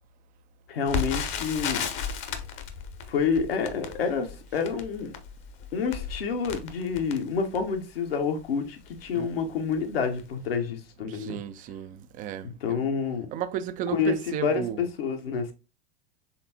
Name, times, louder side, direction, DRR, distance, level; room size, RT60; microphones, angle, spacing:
voice 1, 0.7-1.9 3.1-5.1 5.7-11.4 12.6-13.3 13.9-15.5, left 6 dB, 75° left, 1.0 m, -28 dB
Crackle, 0.9-7.8 8.4-8.5 8.9-9.1 9.7-9.9 10.2-10.3, left 6 dB, 40° left, 0.8 m, -34 dB
voice 2, 11.0-12.8 13.3-14.8, right 10 dB, 30° right, 0.4 m, -34 dB
4.2 x 3.4 x 2.8 m
hypercardioid pair, 95°, 30 cm